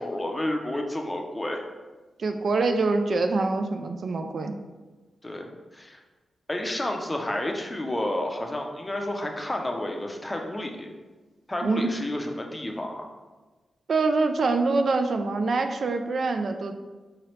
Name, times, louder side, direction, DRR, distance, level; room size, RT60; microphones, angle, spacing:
voice 1, 0.0-1.6 5.2-6.0 6.5-10.9 11.5-13.1, left 1 dB, 15° left, 2 dB, 0.5 m, -31 dB
voice 2, 2.2-4.5 11.6-11.9 13.9-16.7, right 3 dB, 55° right, 6 dB, 0.3 m, -25 dB
4.8 x 3.1 x 3.0 m, 1.2 s
wide cardioid pair, 105°, 0 cm